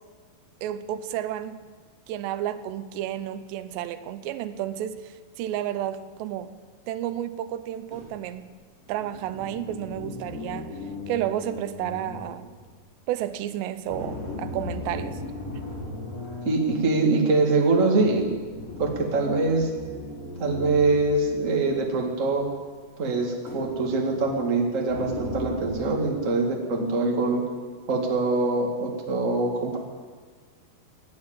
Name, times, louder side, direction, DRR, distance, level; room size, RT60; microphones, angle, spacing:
voice 1, 0.6-1.6 2.1-6.5 6.9-8.5 8.9-10.7 11.1-12.5 13.1-15.2, right 11 dB, 90° right, 12 dB, 2.9 m, -31 dB
sound 1, 7.9-8.2 8.8-12.8 13.9-16.9 18.0-22.0 22.3-22.4 23.5-24.3 24.9-25.8, left 3 dB, 35° left, 4.9 m, -37 dB
voice 2, 16.4-18.3 18.8-19.7 20.4-22.4 23.0-27.4 27.9-29.8, right 3 dB, 30° right, 0 dB, 1.3 m, -23 dB
16.5 x 9.7 x 8.8 m, 1.5 s
omnidirectional pair, 4.9 m